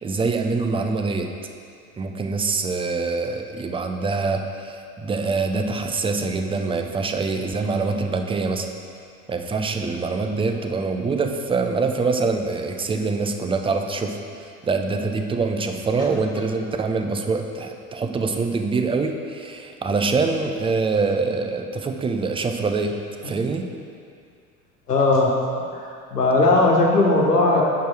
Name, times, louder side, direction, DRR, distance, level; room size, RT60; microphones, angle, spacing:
voice 1, 0.0-1.3 2.0-8.7 9.3-23.7, right 4 dB, 10° right, 5 dB, 0.5 m, -24 dB
voice 2, 24.9-25.3 25.7-27.6, left 2 dB, 85° left, -1 dB, 1.4 m, -18 dB
8.9 x 4.9 x 6.2 m, 2.3 s
figure-of-eight pair, 75°, 46 cm